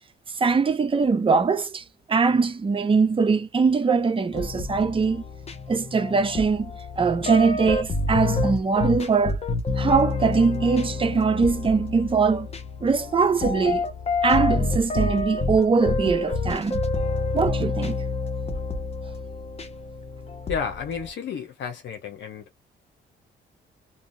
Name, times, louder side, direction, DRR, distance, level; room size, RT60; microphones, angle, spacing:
voice 1, 0.4-5.2 5.7-6.7 7.0-9.4 9.8-12.5 12.8-13.8 14.2-16.8 17.3-18.0, right 4 dB, 25° right, 0.6 m, -22 dB
sound 1, 4.3-21.1, left 3 dB, 30° left, 0.7 m, -28 dB
voice 2, 20.5-22.4, left 7 dB, 65° left, 0.7 m, -31 dB
2.7 x 2.1 x 2.6 m
cardioid pair, 90°, 20 cm